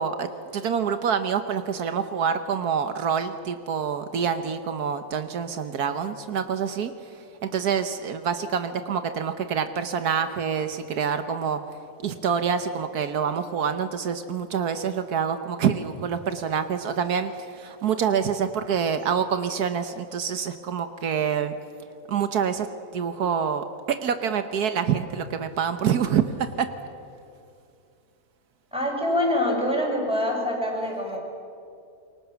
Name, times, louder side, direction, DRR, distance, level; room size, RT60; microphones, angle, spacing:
voice 1, 0.0-11.6 12.0-21.5 22.1-26.7, right 7 dB, 80° right, 9 dB, 1.6 m, -26 dB
voice 2, 28.7-31.2, left 1 dB, 5° right, -2 dB, 6.7 m, -25 dB
28.5 x 23.5 x 7.1 m, 2.5 s
omnidirectional pair, 1.6 m